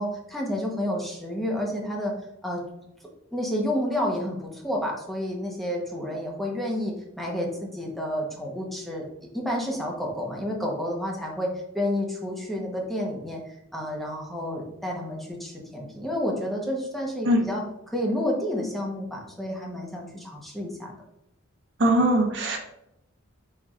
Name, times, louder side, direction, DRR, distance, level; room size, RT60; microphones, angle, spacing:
voice 1, 0.0-2.1 2.4-2.6 3.3-9.0 9.3-11.5 11.7-13.4 13.7-20.9, left 1 dB, ahead, -2 dB, 0.9 m, -30 dB
voice 2, 21.8-22.6, right 1 dB, 60° right, 1 dB, 1.0 m, -20 dB
4.7 x 4.5 x 2.4 m, 0.83 s
head